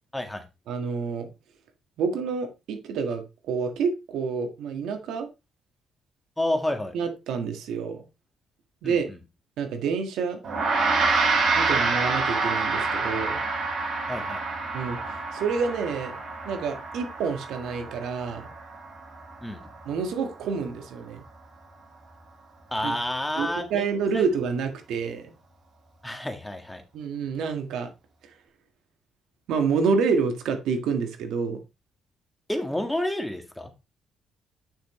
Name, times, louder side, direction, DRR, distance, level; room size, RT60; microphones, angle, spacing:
voice 1, 0.1-0.4 6.4-6.9 8.8-9.2 14.1-14.4 19.4-19.7 22.7-23.9 24.1-24.2 26.0-26.8 32.5-33.7, left 1 dB, 5° left, 5 dB, 1.9 m, -29 dB
voice 2, 0.7-1.3 2.0-5.3 6.9-8.1 8.8-9.1 9.6-10.4 11.6-13.4 14.7-16.2 16.5-18.5 19.9-21.2 22.8-23.0 23.4-25.3 26.9-27.9 28.2-28.3 29.5-31.6, right 5 dB, 85° right, 6 dB, 1.7 m, -28 dB
Gong, 10.4-20.0, right 3 dB, 65° right, 4.6 m, -27 dB
10.0 x 6.2 x 3.2 m, 0.26 s
cardioid pair, 90°, 0 cm